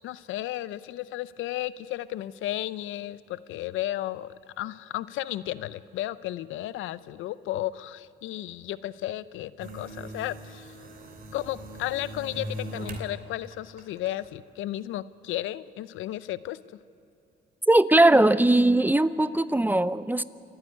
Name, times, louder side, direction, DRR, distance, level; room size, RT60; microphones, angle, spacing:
voice 1, 0.0-10.8 11.3-16.8, left 14 dB, 85° left, 17 dB, 0.6 m, -34 dB
sound 1, 9.6-13.1 13.5-14.3, right 1 dB, 45° right, 2.7 m, -40 dB
voice 2, 17.7-20.2, right 1 dB, 10° right, 16 dB, 0.5 m, -20 dB
28.5 x 9.6 x 9.6 m, 2.9 s
cardioid pair, 90°, 20 cm